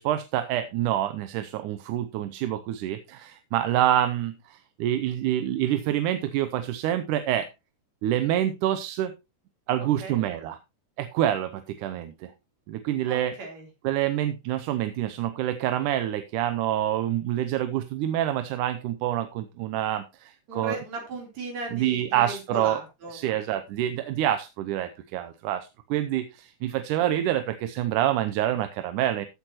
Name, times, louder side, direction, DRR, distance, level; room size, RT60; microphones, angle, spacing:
voice 1, 0.0-7.5 8.0-9.1 9.7-10.6 11.0-12.3 12.7-13.3 13.8-20.8 21.7-22.8 23.1-29.3, right 12 dB, 90° right, 10 dB, 2.3 m, -27 dB
voice 2, 13.1-13.7 20.5-23.3, right 2 dB, 60° right, 1 dB, 4.8 m, -37 dB
14.5 x 8.0 x 3.0 m, 0.25 s
omnidirectional pair, 3.5 m